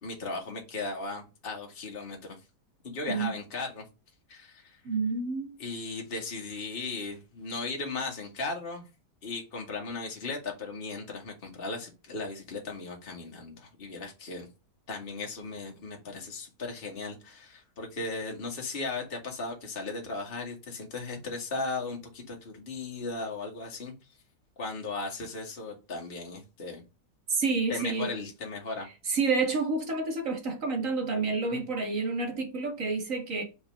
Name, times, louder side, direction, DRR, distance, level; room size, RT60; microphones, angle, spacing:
voice 1, 0.0-2.4 2.8-3.8 4.3-4.8 5.6-8.9 9.2-14.5 14.9-23.9 24.6-26.8 27.7-28.9 31.5-31.7, left 3 dB, 35° left, 1.8 m, -37 dB
voice 2, 4.9-5.5 27.3-28.1 29.1-33.4, right 4 dB, 50° right, 1.8 m, -29 dB
5.6 x 4.5 x 5.3 m
omnidirectional pair, 1.9 m